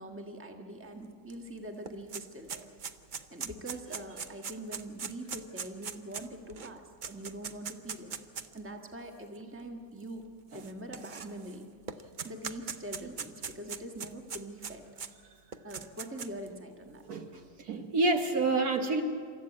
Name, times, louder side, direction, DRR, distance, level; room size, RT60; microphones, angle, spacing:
voice 1, 0.0-2.7 3.3-8.1 8.5-10.2 10.5-11.7 12.2-14.8 15.6-17.0, right 1 dB, 5° right, 4 dB, 1.5 m, -43 dB
sound 1, 1.3-1.4 1.6-8.6 9.3-9.4 10.5-11.5 11.9-15.1 15.5-16.5, right 6 dB, 80° right, 0.4 m, -40 dB
voice 2, 17.1-19.0, right 3 dB, 60° right, 5 dB, 1.6 m, -29 dB
27.5 x 14.0 x 8.7 m, 2.2 s
omnidirectional pair, 2.0 m